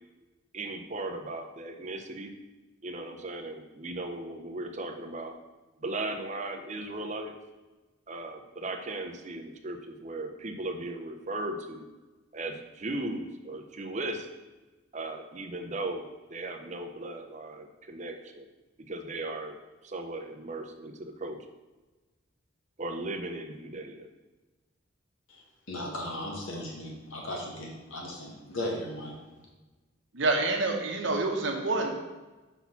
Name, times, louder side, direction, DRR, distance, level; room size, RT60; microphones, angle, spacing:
voice 1, 0.5-2.3 2.8-5.3 5.8-7.3 8.1-11.9 12.3-14.3 14.9-18.4 18.9-19.5 19.8-21.4 22.8-24.1, right 2 dB, 35° right, 4 dB, 0.6 m, -37 dB
voice 2, 25.3-29.2, left 1 dB, 75° left, -1 dB, 1.7 m, -37 dB
voice 3, 30.1-31.9, right 2 dB, 60° right, 3 dB, 1.0 m, -27 dB
5.8 x 4.1 x 5.7 m, 1.2 s
head